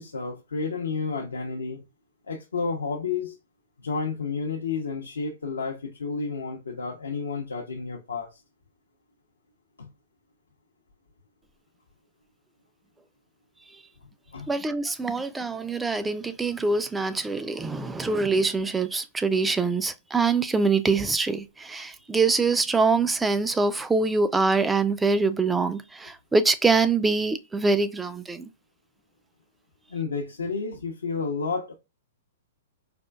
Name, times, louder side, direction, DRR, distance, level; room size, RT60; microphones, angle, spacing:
voice 1, 0.0-1.8 2.3-3.4 3.8-8.3 9.8-9.9 14.3-14.5 29.9-31.7, left 4 dB, 85° left, 0.6 m, -31 dB
voice 2, 14.5-28.5, right 4 dB, 10° right, 0.4 m, -24 dB
4.2 x 2.4 x 2.2 m
hypercardioid pair, 120°, 0 cm